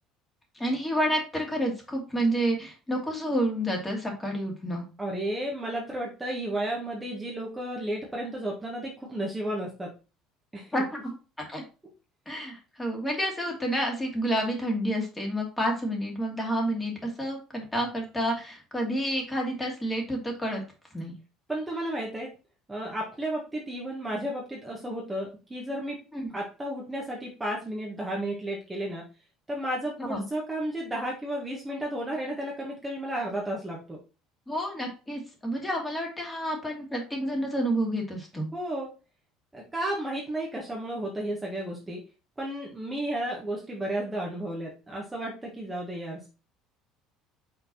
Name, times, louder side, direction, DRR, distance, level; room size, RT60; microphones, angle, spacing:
voice 1, 0.5-4.8 10.7-10.9 11.5-11.6 12.3-20.6 20.9-21.1 26.1-26.3 30.0-30.2 34.5-38.5, equal, 10° left, 0 dB, 2.5 m, -29 dB
voice 2, 5.0-9.9 10.5-10.8 21.5-22.3 22.7-26.0 26.3-29.0 29.5-34.0 38.5-38.9 39.5-42.0 42.4-46.3, right 1 dB, 15° right, -3 dB, 1.6 m, -33 dB
6.0 x 3.9 x 4.0 m, 0.33 s
supercardioid pair, 110°, 0 cm